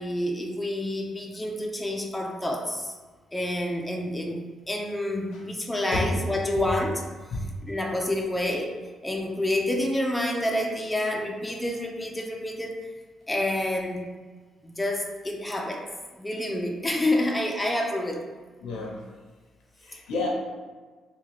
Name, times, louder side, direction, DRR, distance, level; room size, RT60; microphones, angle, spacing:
voice 1, 0.0-2.9 3.3-7.0 7.7-8.7 9.0-12.8 13.3-14.1 14.6-15.9 16.1-18.2, left 1 dB, 10° left, 0 dB, 0.5 m, -28 dB
voice 2, 18.6-19.1 19.8-20.3, left 3 dB, 85° left, -1 dB, 0.7 m, -31 dB
3.7 x 2.3 x 3.1 m, 1.4 s
cardioid pair, 90°, 0 cm